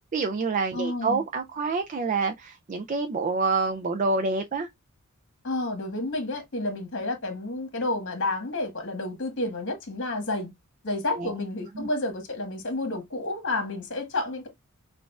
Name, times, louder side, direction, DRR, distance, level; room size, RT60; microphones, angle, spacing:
voice 1, 0.1-4.7 11.2-11.3 11.8-11.9, right 4 dB, 35° right, 0.4 m, -27 dB
voice 2, 0.7-1.2 5.4-10.5 10.8-14.5, left 2 dB, 60° left, 1.4 m, -30 dB
5.9 x 2.4 x 2.3 m
head